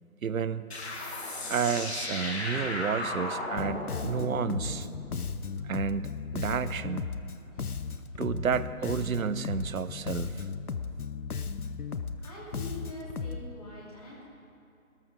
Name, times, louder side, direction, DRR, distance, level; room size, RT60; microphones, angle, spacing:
voice 1, 0.2-0.7 1.5-4.9 5.6-7.1 8.2-10.5, right 7 dB, 70° right, 15 dB, 0.6 m, -31 dB
sound 1, 0.7-6.0, left 2 dB, 45° left, 1.9 m, -36 dB
Bass guitar, 3.6-13.5, left 5 dB, 85° left, 0.9 m, -36 dB
voice 2, 7.3-7.9 12.1-14.2, left 1 dB, 25° left, -5 dB, 2.7 m, -45 dB
16.5 x 13.5 x 4.0 m, 2.6 s
figure-of-eight pair, 170°, 43 cm